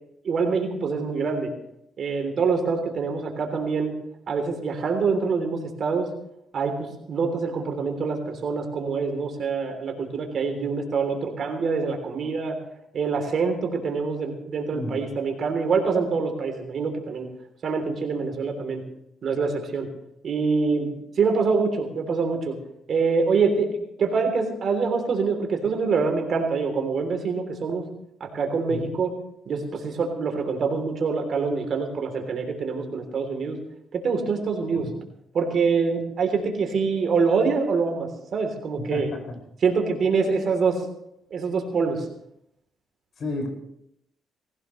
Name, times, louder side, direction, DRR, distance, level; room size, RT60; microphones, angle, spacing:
voice 1, 0.2-1.5 2.0-3.9 4.3-6.1 6.5-12.6 12.9-17.3 17.6-18.8 19.2-19.9 20.2-20.9 21.2-22.6 22.9-27.8 28.2-29.1 29.4-33.6 33.9-34.9 35.3-39.1 39.6-40.8 41.3-42.0, right 4 dB, 55° right, 4 dB, 3.3 m, -25 dB
voice 2, 14.7-15.0 34.7-34.9 38.9-39.2 43.2-43.5, left 2 dB, 55° left, 2 dB, 5.7 m, -31 dB
19.5 x 16.5 x 3.2 m, 0.78 s
cardioid pair, 90°, 0 cm